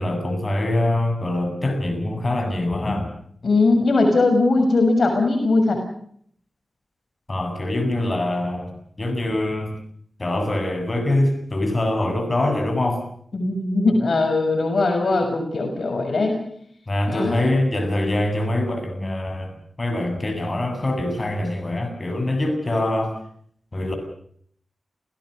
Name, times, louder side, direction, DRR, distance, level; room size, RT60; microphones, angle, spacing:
voice 1, 0.0-3.1 7.3-9.8 10.2-13.0 16.9-23.2 23.7-24.0, left 1 dB, 35° left, 5 dB, 7.9 m, -24 dB
voice 2, 3.4-5.8 13.3-16.4 17.1-17.4, left 3 dB, 70° left, 4 dB, 6.4 m, -20 dB
29.0 x 18.0 x 6.7 m, 0.63 s
wide cardioid pair, 65°, 0 cm